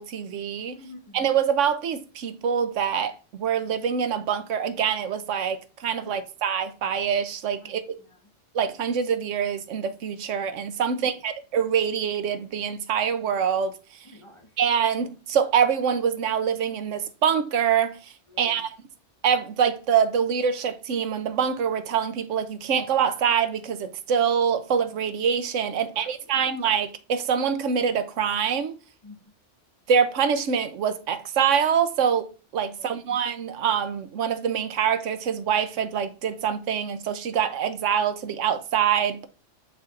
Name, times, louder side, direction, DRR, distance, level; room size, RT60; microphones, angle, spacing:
voice 1, 0.0-0.8 1.1-7.8 8.5-13.7 14.6-18.0 18.4-18.7 19.2-28.7 29.9-32.3 32.5-39.3, right 7 dB, 85° right, 1.1 m, -25 dB
voice 2, 0.7-1.3 6.0-6.2 7.6-8.1 10.9-11.1 14.0-14.5 18.3-18.6 25.8-26.4 29.0-29.2 32.7-33.2, left 2 dB, 25° left, 1.1 m, -49 dB
9.3 x 4.4 x 2.5 m
omnidirectional pair, 1.2 m